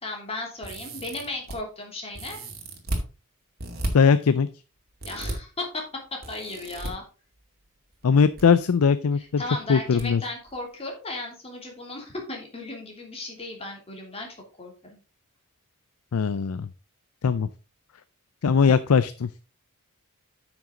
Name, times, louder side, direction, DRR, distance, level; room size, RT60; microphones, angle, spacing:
voice 1, 0.0-2.5 5.0-5.9 6.3-7.0 9.2-14.3 14.6-15.0, left 2 dB, 30° left, 1 dB, 2.9 m, -36 dB
sound 1, 0.6-1.6 2.1-3.0 3.6-3.9 5.0-5.3 6.2-6.9 8.0-8.4 8.7-8.8 10.0-10.1 10.5-10.6, right 1 dB, 45° right, 2.3 m, -33 dB
voice 2, 3.9-4.5 8.0-9.4 9.7-10.2 16.1-16.7 17.2-17.5 18.4-19.3, left 6 dB, 75° left, 13 dB, 0.5 m, -20 dB
9.1 x 6.0 x 3.8 m, 0.33 s
head